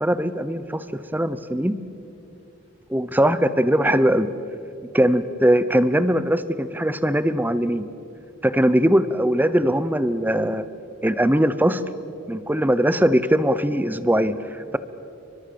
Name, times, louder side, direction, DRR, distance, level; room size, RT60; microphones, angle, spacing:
voice 1, 0.0-1.7 2.9-4.3 4.9-7.9 8.4-10.7 11.0-11.8 12.3-14.8, right 1 dB, 10° right, 13 dB, 0.8 m, -20 dB
29.5 x 23.5 x 7.0 m, 2.7 s
head